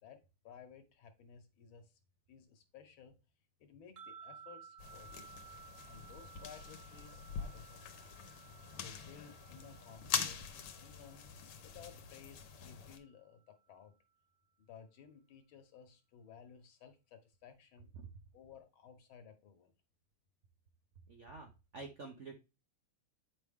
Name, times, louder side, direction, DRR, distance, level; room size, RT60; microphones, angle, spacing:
voice 1, 0.0-2.0 2.3-3.1 3.6-5.3 5.8-8.1 8.7-11.2 11.6-14.0 14.6-17.9 18.3-19.7, left 7 dB, 65° left, 7 dB, 1.9 m, -57 dB
sound 1, 4.0-13.2, right 6 dB, 50° right, 0.9 m, -58 dB
sound 2, 4.8-13.0, left 7 dB, 85° left, 1.9 m, -44 dB
voice 2, 21.1-22.3, right 3 dB, 80° right, 4 dB, 0.6 m, -49 dB
8.4 x 4.7 x 3.6 m, 0.29 s
omnidirectional pair, 2.4 m